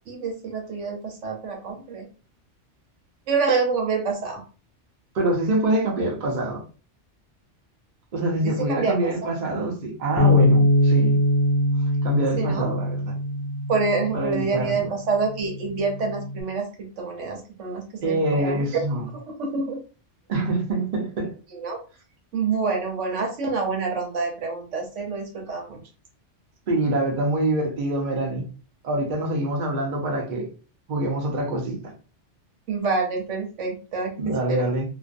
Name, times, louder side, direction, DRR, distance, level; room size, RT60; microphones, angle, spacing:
voice 1, 0.1-2.0 3.3-4.4 8.4-9.1 12.4-12.7 13.7-18.6 19.1-19.8 21.5-21.8 22.3-25.8 32.7-34.7, right 4 dB, 80° right, 1.0 m, -27 dB
voice 2, 5.1-6.6 8.1-11.2 12.0-13.1 14.1-14.9 18.0-19.1 20.3-21.3 26.7-28.5 28.8-30.5 30.9-31.9 34.2-34.8, right 2 dB, 45° right, 0.8 m, -25 dB
Bass guitar, 10.2-14.6 15.3-16.4, left 1 dB, 70° left, 0.8 m, -22 dB
2.5 x 2.1 x 2.5 m
omnidirectional pair, 1.2 m